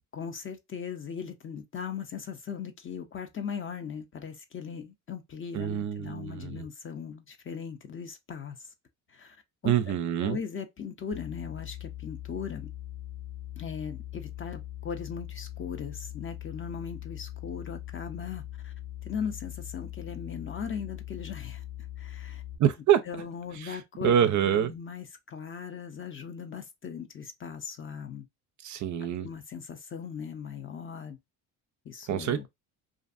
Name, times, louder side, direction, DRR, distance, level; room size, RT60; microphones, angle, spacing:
voice 1, 0.1-8.7 9.1-9.4 9.6-10.0 10.2-12.7 13.6-18.7 19.0-21.6 22.0-22.4 23.1-28.3 29.2-31.2 31.8-32.5, left 6 dB, 30° left, 0.5 m, -39 dB
voice 2, 5.5-6.7 9.6-10.4 22.6-23.0 23.6-23.8 24.0-24.7 28.6-29.3 32.1-32.5, right 10 dB, 45° right, 0.4 m, -26 dB
sound 1, 11.1-22.6, left 13 dB, 60° left, 1.1 m, -41 dB
2.5 x 2.5 x 2.4 m
cardioid pair, 95°, 41 cm